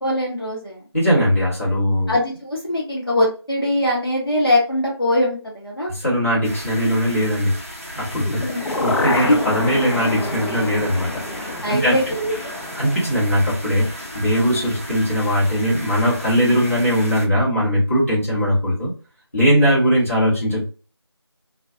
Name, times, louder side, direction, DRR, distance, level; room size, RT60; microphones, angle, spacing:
voice 1, 0.0-0.8 2.1-5.9 8.4-8.7 9.3-9.4 11.6-12.5, left 1 dB, 55° left, -3 dB, 0.9 m, -21 dB
voice 2, 0.9-2.1 5.8-7.6 8.0-11.9 12.7-18.9 19.3-20.7, equal, 30° left, -8 dB, 1.1 m, -20 dB
sound 1, 6.4-17.3, equal, 30° right, 0.5 m, -35 dB
sound 2, 8.1-14.1 14.4-14.5, left 2 dB, 85° left, 0.6 m, -28 dB
2.4 x 2.2 x 2.6 m, 0.35 s
figure-of-eight pair, 175°, 14 cm